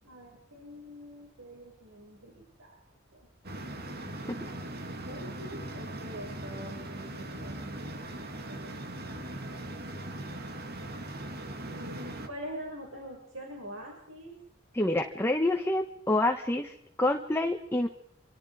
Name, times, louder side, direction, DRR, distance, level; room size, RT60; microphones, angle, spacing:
voice 1, 0.0-2.8 3.1-3.3 4.4-4.8 5.0-8.8 9.0-9.7 11.6-14.3, equal, 80° right, 0 dB, 6.1 m, -45 dB
sound 1, 3.4-12.3, right 1 dB, 55° right, 2.7 m, -40 dB
voice 2, 14.7-17.9, left 1 dB, 10° left, 4 dB, 1.4 m, -27 dB
27.0 x 25.5 x 5.0 m, 0.71 s
head